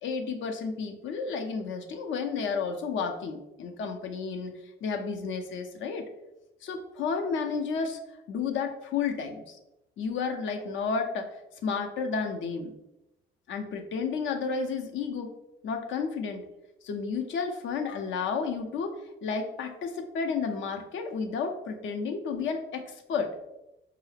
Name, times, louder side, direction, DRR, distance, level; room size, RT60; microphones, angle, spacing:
voice 1, 0.0-6.0 6.6-8.0 8.3-9.6 10.0-11.3 11.6-12.7 13.5-15.3 15.6-16.5 16.8-23.3, left 5 dB, 75° left, 5 dB, 0.6 m, -32 dB
4.6 x 2.0 x 3.2 m, 0.92 s
cardioid pair, 90°, 20 cm